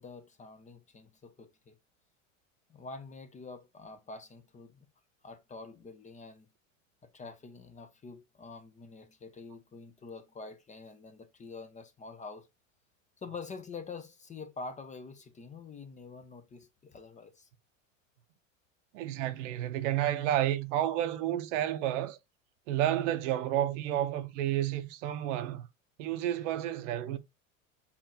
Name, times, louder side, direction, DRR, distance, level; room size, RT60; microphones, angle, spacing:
voice 1, 0.0-1.8 2.7-4.9 5.2-6.5 7.1-12.5 13.2-17.5, left 4 dB, 20° left, 0.7 m, -46 dB
voice 2, 18.9-22.2 22.7-25.7 26.0-27.2, right 12 dB, 65° right, 0.8 m, -31 dB
7.1 x 2.6 x 2.8 m
hypercardioid pair, 90°, 39 cm